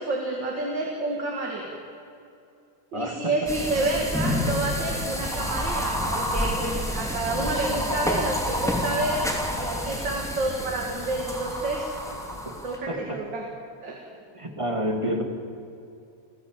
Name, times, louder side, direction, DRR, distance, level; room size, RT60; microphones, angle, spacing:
voice 1, 0.0-1.8 2.9-11.9 12.6-13.5 13.8-14.2, right 2 dB, 85° right, 0 dB, 3.2 m, -29 dB
sound 1, 3.5-12.8, equal, ahead, 2.9 m, -29 dB
voice 2, 12.9-13.2 14.3-15.2, equal, 15° right, 3 dB, 2.3 m, -29 dB
29.0 x 15.0 x 7.6 m, 2.6 s
omnidirectional pair, 1.9 m